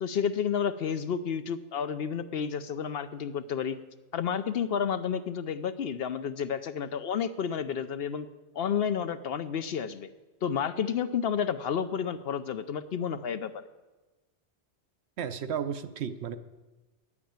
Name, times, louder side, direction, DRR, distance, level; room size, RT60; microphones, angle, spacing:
voice 1, 0.0-3.8 4.1-8.3 8.5-10.1 10.4-13.6, left 7 dB, 65° left, 12 dB, 0.8 m, -31 dB
voice 2, 15.2-16.4, right 8 dB, 70° right, 10 dB, 0.9 m, -33 dB
10.5 x 8.6 x 8.8 m, 1.2 s
omnidirectional pair, 1.1 m